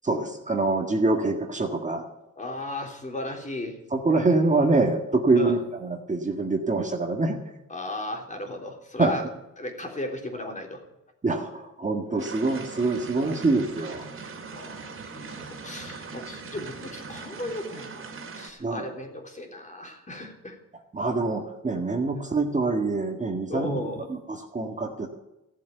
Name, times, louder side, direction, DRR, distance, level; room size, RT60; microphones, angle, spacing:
voice 1, 0.0-2.1 3.9-7.4 9.0-9.2 11.2-14.1 18.6-18.9 20.9-25.1, right 3 dB, 25° right, 3 dB, 1.8 m, -25 dB
voice 2, 2.4-3.8 5.3-5.6 7.7-9.2 9.6-10.8 12.1-12.2 12.8-12.9 14.5-20.6 23.5-24.1, left 1 dB, 25° left, 2 dB, 3.4 m, -35 dB
sound 1, 12.2-18.5, right 4 dB, 45° right, 2.7 m, -40 dB
15.0 x 7.4 x 9.2 m, 0.95 s
cardioid pair, 90°, 30 cm